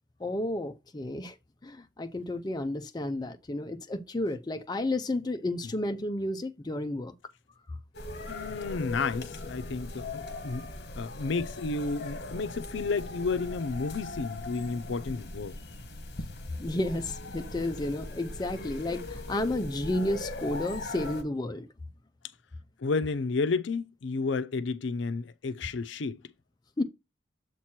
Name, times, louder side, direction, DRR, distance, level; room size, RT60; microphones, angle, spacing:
voice 1, 0.2-1.3 1.6-7.1 7.7-7.8 16.6-21.7 26.8-26.9, left 1 dB, 20° left, 0.4 m, -32 dB
sound 1, 7.9-21.2, left 2 dB, 55° left, 1.1 m, -40 dB
voice 2, 8.3-10.7 11.0-15.6 22.8-26.2, left 4 dB, 75° left, 0.5 m, -31 dB
7.3 x 2.9 x 6.0 m
head